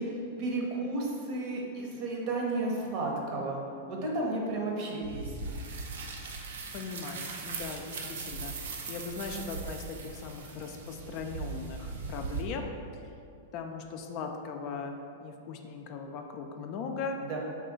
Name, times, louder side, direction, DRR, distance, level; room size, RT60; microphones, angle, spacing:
voice 1, 0.0-3.6 3.9-5.4 17.2-17.4, right 2 dB, 50° right, -2 dB, 0.8 m, -33 dB
sound 1, 5.0-12.4, right 4 dB, 80° right, 0.4 m, -39 dB
voice 2, 6.7-8.5 8.9-12.7 13.5-17.2, left 5 dB, 45° left, 4 dB, 0.3 m, -39 dB
3.6 x 2.3 x 3.9 m, 2.4 s
hypercardioid pair, 120°, 0 cm